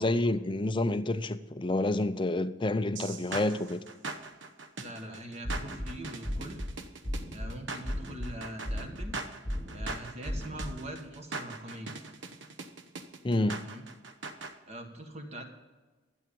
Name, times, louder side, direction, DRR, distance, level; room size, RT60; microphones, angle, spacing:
voice 1, 0.0-3.8 13.2-13.6, left 2 dB, 25° left, 0.5 m, -28 dB
sound 1, 3.0-14.5, right 3 dB, 65° right, 0.9 m, -41 dB
voice 2, 4.8-6.6 7.3-9.2 9.7-11.9 13.6-13.8 14.7-15.4, right 1 dB, 35° right, 1.6 m, -42 dB
sound 2, 5.4-5.9 6.2-6.7 7.0-7.5 7.8-8.3 8.6-9.1 9.4-9.9 10.2-10.7, equal, 15° right, 1.8 m, -35 dB
12.0 x 8.8 x 5.3 m
head